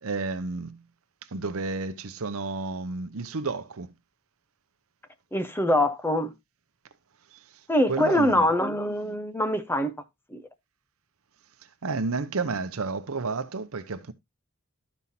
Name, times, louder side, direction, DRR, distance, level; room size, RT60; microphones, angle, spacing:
voice 1, 0.0-0.8 1.3-3.9 7.3-8.5 11.8-14.1, right 3 dB, 75° right, 0.8 m, -31 dB
voice 2, 5.3-6.3 7.7-10.0 10.3-10.4, left 1 dB, 10° left, 0.7 m, -24 dB
12.5 x 5.6 x 2.8 m
head